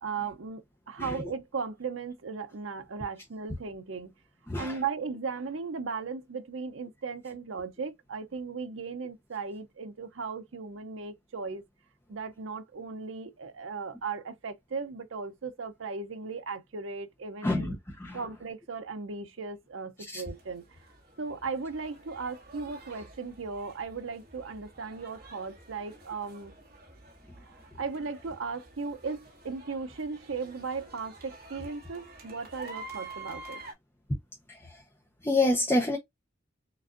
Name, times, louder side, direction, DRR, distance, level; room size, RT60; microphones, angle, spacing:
voice 1, 0.0-4.1 4.6-11.6 12.1-17.7 18.1-20.8 21.2-26.5 27.4-33.6, right 5 dB, 70° right, 0.6 m, -37 dB
voice 2, 4.5-4.8 17.4-18.2 20.1-20.2 34.5-34.8 35.2-36.0, left 2 dB, 10° left, 0.7 m, -28 dB
sound 1, 20.3-33.7, right 2 dB, 50° right, 1.7 m, -49 dB
6.1 x 2.5 x 2.5 m
head